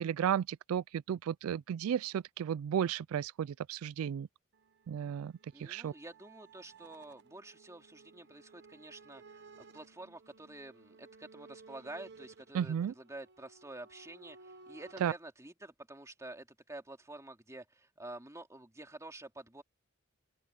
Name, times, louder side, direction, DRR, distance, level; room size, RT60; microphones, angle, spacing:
voice 1, 0.0-4.3 4.9-5.3 5.6-5.9 12.5-12.9 15.0-15.1, right 9 dB, 85° right, 0.3 m, -33 dB
sound 1, 4.5-15.2, right 4 dB, 55° right, 1.1 m, -57 dB
voice 2, 5.5-19.6, right 2 dB, 15° right, 2.5 m, -49 dB
open air
head